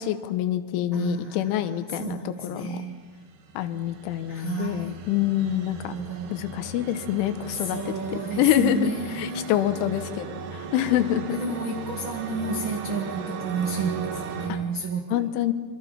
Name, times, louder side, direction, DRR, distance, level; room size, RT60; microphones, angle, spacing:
voice 1, 0.0-2.8 3.6-6.0 6.3-11.6 15.1-15.5, left 12 dB, 80° left, 10 dB, 3.4 m, -26 dB
voice 2, 0.9-1.5 2.0-2.9 4.3-4.9 5.7-6.4 7.5-9.6 11.3-15.3, right 4 dB, 80° right, 0 dB, 1.1 m, -31 dB
sound 1, 2.9-14.5, right 5 dB, 65° right, 3.6 m, -37 dB
26.5 x 24.0 x 5.7 m, 1.5 s
omnidirectional pair, 5.5 m